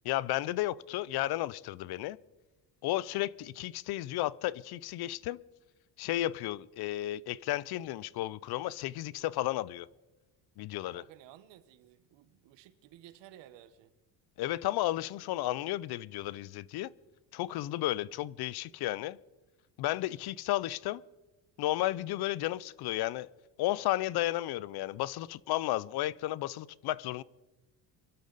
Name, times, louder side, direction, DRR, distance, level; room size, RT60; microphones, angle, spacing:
voice 1, 0.1-2.2 2.8-5.4 6.0-9.9 10.6-11.0 14.4-16.9 17.3-19.2 19.8-21.0 21.6-23.3 23.6-27.2, left 15 dB, 65° left, 0.5 m, -33 dB
voice 2, 10.9-13.9, right 12 dB, 80° right, 1.2 m, -55 dB
24.0 x 12.0 x 4.0 m
cardioid pair, 125°, 42 cm